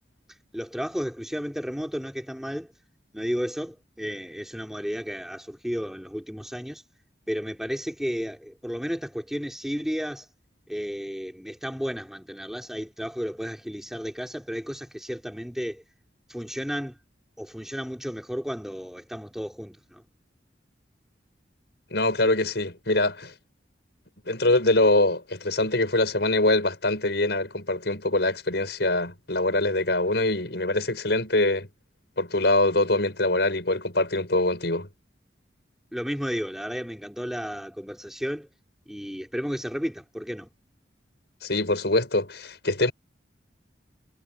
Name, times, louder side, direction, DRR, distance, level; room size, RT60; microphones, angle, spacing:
voice 1, 0.5-2.7 3.1-6.8 7.3-10.3 10.7-15.8 16.3-17.0 17.4-20.0 35.9-38.5 38.9-40.5, equal, ahead, 3.8 m, -33 dB
voice 2, 21.9-23.3 24.3-31.7 32.2-34.9 41.4-42.9, left 2 dB, 70° left, 5.6 m, -24 dB
head